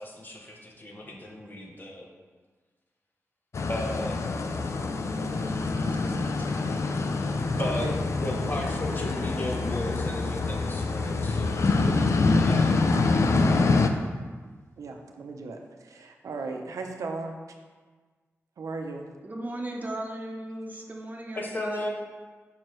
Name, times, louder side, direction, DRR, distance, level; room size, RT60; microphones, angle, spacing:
voice 1, 0.0-2.1 3.7-4.5 7.4-12.8 13.2-13.7 21.3-21.9, left 1 dB, 35° left, 0 dB, 1.0 m, -36 dB
sound 1, 3.5-13.9, left 3 dB, 60° left, 0.4 m, -25 dB
voice 2, 7.6-7.9 8.2-8.5 14.8-17.3 18.6-19.1, right 3 dB, 90° right, 3 dB, 0.6 m, -36 dB
voice 3, 19.2-21.9, right 1 dB, 30° right, 1 dB, 0.9 m, -36 dB
6.2 x 5.6 x 3.2 m, 1.4 s
wide cardioid pair, 85°, 5 cm